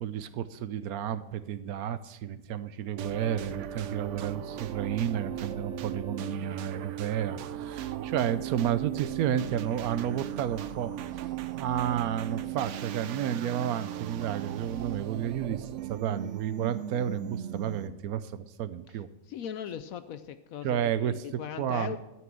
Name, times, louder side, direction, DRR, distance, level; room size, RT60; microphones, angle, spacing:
voice 1, 0.0-19.1 20.6-21.2 21.6-22.0, right 9 dB, 70° right, 14 dB, 1.0 m, -31 dB
sound 1, 3.0-18.1, right 11 dB, 85° right, 0.6 m, -37 dB
voice 2, 19.3-22.0, left 9 dB, 70° left, 12 dB, 0.8 m, -39 dB
13.0 x 6.1 x 7.4 m, 0.97 s
omnidirectional pair, 1.9 m